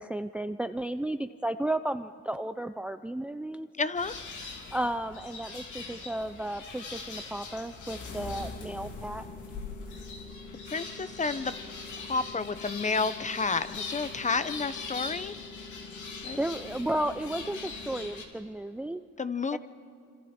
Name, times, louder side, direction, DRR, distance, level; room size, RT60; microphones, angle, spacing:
voice 1, 0.0-3.7 4.7-9.3 16.4-19.0 19.5-19.6, right 1 dB, 5° right, 11 dB, 0.4 m, -33 dB
voice 2, 3.8-4.1 10.7-11.5 12.1-15.4 16.2-16.4 19.2-19.6, left 4 dB, 25° left, 14 dB, 0.8 m, -30 dB
sound 1, 3.9-18.2, left 4 dB, 75° left, 3.0 m, -41 dB
sound 2, 8.1-18.1, left 3 dB, 45° left, 2.3 m, -48 dB
26.5 x 26.0 x 4.4 m, 2.5 s
cardioid pair, 90°, 30 cm